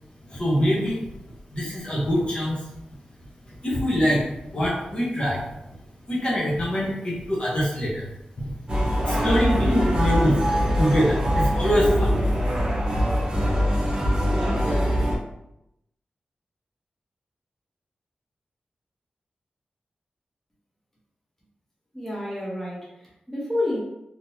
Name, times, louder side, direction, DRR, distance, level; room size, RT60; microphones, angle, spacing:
voice 1, 0.3-1.2 1.5-2.7 3.4-5.8 6.0-8.1 8.4-10.4 10.8-12.3, equal, 35° left, -5 dB, 1.1 m, -24 dB
sound 1, 8.7-15.2, equal, 30° right, 1.1 m, -23 dB
voice 2, 21.9-23.8, left 1 dB, 10° left, -6 dB, 1.1 m, -29 dB
3.7 x 3.0 x 2.8 m, 0.85 s
wide cardioid pair, 110°, 3 cm